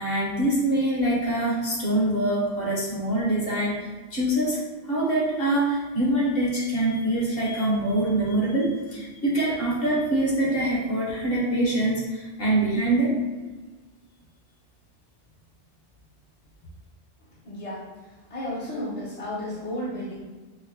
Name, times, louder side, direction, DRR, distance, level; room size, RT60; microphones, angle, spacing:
voice 1, 0.0-13.2, right 1 dB, 55° left, -4 dB, 1.1 m, -24 dB
voice 2, 17.5-17.9 18.3-20.2, left 1 dB, 40° left, -6 dB, 0.6 m, -32 dB
4.4 x 2.1 x 2.8 m, 1.3 s
omnidirectional pair, 1.2 m